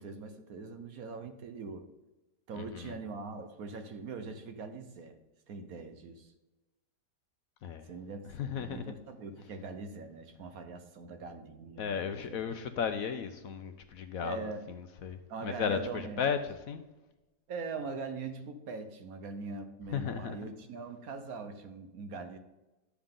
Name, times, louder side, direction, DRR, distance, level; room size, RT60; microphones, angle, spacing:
voice 1, 0.0-1.9 2.5-5.2 5.5-6.3 7.8-8.2 8.5-12.4 14.2-14.6 15.3-16.2 17.5-22.4, right 4 dB, 65° right, 7 dB, 1.2 m, -42 dB
voice 2, 2.5-3.0 7.6-7.9 8.3-8.9 11.8-16.8 19.9-20.4, left 7 dB, 65° left, 9 dB, 1.0 m, -35 dB
11.5 x 7.1 x 3.8 m, 1.0 s
omnidirectional pair, 1.8 m